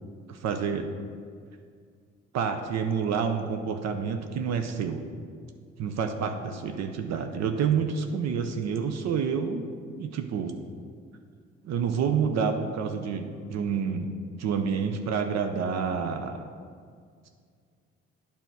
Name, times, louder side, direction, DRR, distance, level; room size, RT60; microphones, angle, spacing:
voice 1, 0.3-0.9 2.3-5.0 5.8-9.7 9.9-10.5 11.6-14.1 14.4-16.5, right 6 dB, 65° right, 6 dB, 0.6 m, -28 dB
8.9 x 3.5 x 5.9 m, 2.1 s
hypercardioid pair, 55°, 29 cm